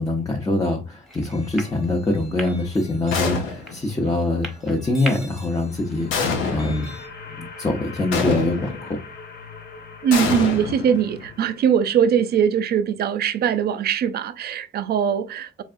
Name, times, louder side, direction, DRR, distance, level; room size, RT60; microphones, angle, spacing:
voice 1, 0.0-6.9 7.3-9.0, left 2 dB, 20° left, 0.8 m, -24 dB
sound 1, 1.0-7.1, equal, ahead, 1.1 m, -40 dB
sound 2, 3.1-3.9 6.1-6.9 8.1-8.9 10.1-11.3, left 5 dB, 90° left, 0.9 m, -26 dB
sound 3, 5.2-12.3, left 4 dB, 55° left, 1.1 m, -42 dB
voice 2, 10.0-15.6, right 8 dB, 55° right, 0.4 m, -21 dB
3.9 x 3.5 x 2.5 m
cardioid pair, 90°, 20 cm